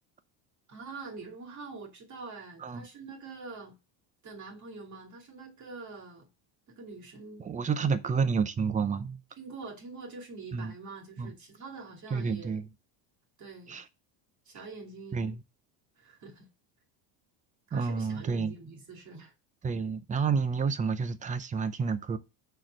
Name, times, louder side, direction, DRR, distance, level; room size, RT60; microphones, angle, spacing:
voice 1, 0.7-3.8 4.2-6.3 6.8-7.9 9.4-12.6 13.4-13.8 14.5-15.3 16.0-16.5 17.7-19.3, right 3 dB, 35° right, 2.5 m, -45 dB
voice 2, 7.4-9.2 10.5-10.7 11.2-11.3 12.1-12.7 13.7-13.8 15.1-15.4 17.7-18.5 19.6-22.2, right 5 dB, 15° right, 0.5 m, -29 dB
6.2 x 4.5 x 6.4 m
cardioid pair, 145°, 48 cm